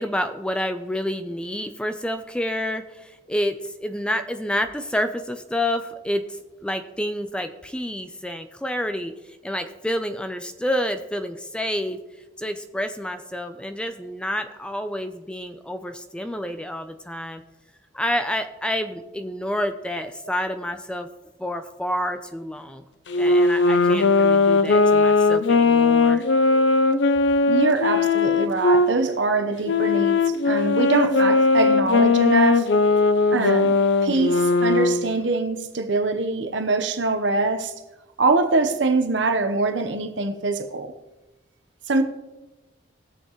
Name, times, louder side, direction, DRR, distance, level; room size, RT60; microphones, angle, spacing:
voice 1, 0.0-12.0 12.4-17.4 17.9-21.1 21.4-22.8 23.2-26.2, equal, 5° left, 0.5 m, -29 dB
Wind instrument woodwind instrument, 23.1-28.9 29.6-35.1, left 3 dB, 80° left, 0.6 m, -19 dB
voice 2, 27.5-32.7 33.3-37.7 38.2-40.9 41.9-42.0, right 3 dB, 85° right, 1.0 m, -23 dB
20.0 x 6.9 x 3.1 m
head